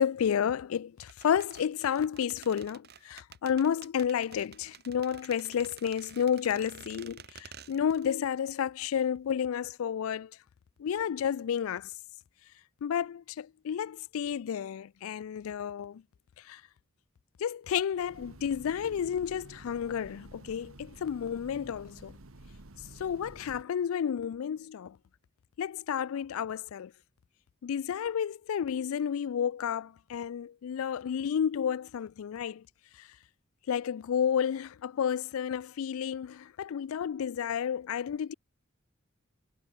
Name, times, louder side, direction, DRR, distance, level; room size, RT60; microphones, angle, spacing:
voice 1, 0.0-10.3 10.8-11.9 12.8-16.0 16.4-16.6 17.4-22.2 23.0-25.0 25.6-26.9 27.6-32.6 33.0-33.1 33.7-38.3, left 8 dB, 80° left, 0.3 m, -31 dB
sound 1, 1.0-8.2 8.4-8.5, right 7 dB, 50° right, 3.7 m, -51 dB
Train, 17.9-23.6, right 1 dB, 80° right, 1.9 m, -51 dB
head